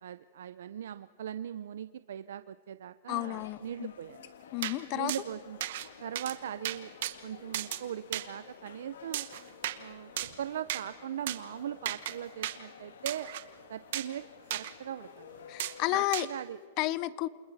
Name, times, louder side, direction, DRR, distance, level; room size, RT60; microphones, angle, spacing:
voice 1, 0.0-4.3 4.9-5.6 6.0-6.9 7.2-9.3 9.8-10.1 10.4-13.3 13.7-15.5 15.9-16.6, right 10 dB, 75° right, 13 dB, 0.5 m, -40 dB
sound 1, 3.1-16.0, left 7 dB, 80° left, 1.6 m, -53 dB
voice 2, 3.1-3.9 4.5-5.1 15.5-16.3 16.8-17.3, left 17 dB, 30° left, 19 dB, 0.5 m, -31 dB
sound 2, 4.6-4.8 5.1-5.2 5.6-5.9 6.2-6.4 6.6-7.1 7.5-7.8 8.1-8.3 9.1-9.8 10.2-10.4 10.7-10.8 11.3-11.4 11.9-12.1 12.4-12.6 13.1-13.4 13.9-14.1 14.5-14.7 15.6-15.8 16.1-16.3, right 13 dB, 55° right, 1.1 m, -35 dB
28.5 x 27.5 x 4.1 m, 2.3 s
supercardioid pair, 170°, 0 cm